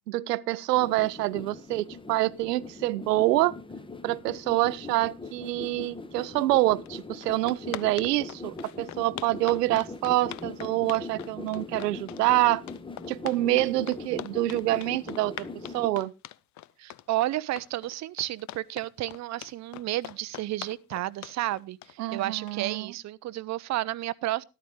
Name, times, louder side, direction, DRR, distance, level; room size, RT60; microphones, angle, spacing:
voice 1, 0.1-3.6 4.0-12.6 13.1-15.5 15.7-16.1 22.0-22.9, right 17 dB, 70° right, 0.8 m, -26 dB
sound 1, 0.7-15.9, left 3 dB, 10° left, 1.0 m, -41 dB
sound 2, 6.9-7.0 7.2-22.8, left 14 dB, 35° left, 0.7 m, -42 dB
voice 2, 16.8-24.4, right 15 dB, 35° right, 0.7 m, -32 dB
13.5 x 12.5 x 3.2 m
figure-of-eight pair, 70°, 50 cm